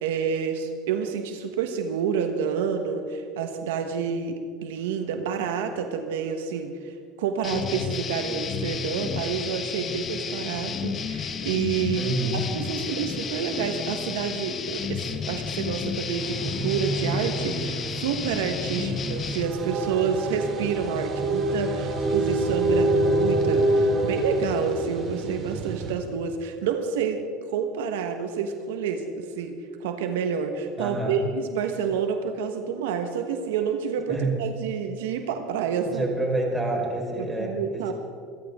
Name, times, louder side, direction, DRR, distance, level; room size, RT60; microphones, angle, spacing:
voice 1, 0.0-12.1 12.5-36.0 37.2-37.9, right 6 dB, 85° right, 6 dB, 1.3 m, -29 dB
sound 1, 7.4-19.5, left 6 dB, 35° left, 1.1 m, -32 dB
voice 2, 12.0-12.4 18.7-19.0 30.8-31.2 34.1-34.3 35.8-37.9, right 1 dB, 10° right, -1 dB, 4.8 m, -28 dB
sound 2, 16.2-25.9, right 2 dB, 40° right, 2.9 m, -26 dB
26.0 x 13.0 x 3.7 m, 2.2 s
supercardioid pair, 110°, 0 cm